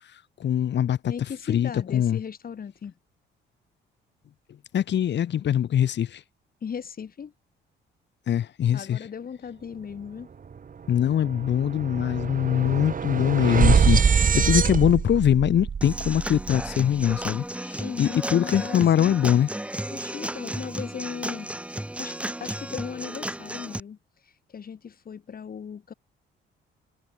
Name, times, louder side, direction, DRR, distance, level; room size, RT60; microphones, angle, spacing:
voice 1, 0.4-1.1 1.5-2.2 4.7-6.2 8.3-9.0 10.9-19.5, left 10 dB, 65° left, 2.3 m, -23 dB
voice 2, 1.1-2.9 6.6-7.3 8.7-10.3 17.8-19.1 19.9-22.1 22.4-24.0 24.2-25.9, left 7 dB, 50° left, 4.4 m, -37 dB
sound 1, 10.4-10.6 10.9-17.1, right 6 dB, 45° right, 3.4 m, -24 dB
Human voice / Acoustic guitar / Drum, 15.8-23.8, right 1 dB, 5° right, 4.7 m, -34 dB
cardioid pair, 90°, 20 cm